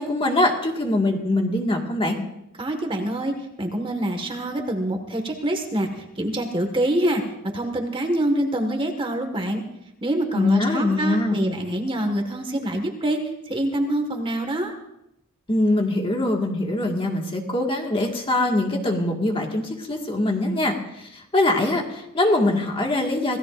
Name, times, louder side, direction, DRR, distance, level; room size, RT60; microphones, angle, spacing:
voice 1, 0.0-2.2 10.3-11.4 15.5-23.4, left 2 dB, 25° left, 1 dB, 1.9 m, -23 dB
voice 2, 2.6-7.2 7.5-9.6 10.0-13.2 13.5-14.7, right 1 dB, 25° right, 4 dB, 1.7 m, -25 dB
27.0 x 17.0 x 2.6 m, 0.83 s
head